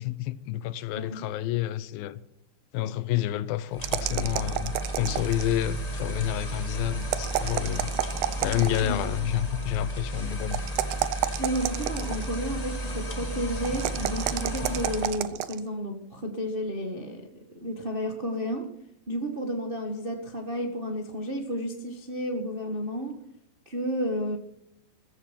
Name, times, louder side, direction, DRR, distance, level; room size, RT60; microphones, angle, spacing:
voice 1, 0.0-2.2 2.7-7.9 8.4-10.6, left 12 dB, 85° left, 2.6 m, -29 dB
voice 2, 0.9-1.3 8.8-9.0 11.4-17.2 17.5-18.7 19.1-23.1 23.6-24.4, equal, 55° right, 0.6 m, -32 dB
sound 1, 3.7-15.3, right 1 dB, 35° left, 0.6 m, -33 dB
sound 2, 3.8-5.6 7.0-8.9 10.5-12.4 13.7-15.6, right 13 dB, 85° right, 2.6 m, -30 dB
15.0 x 14.5 x 5.8 m
omnidirectional pair, 4.1 m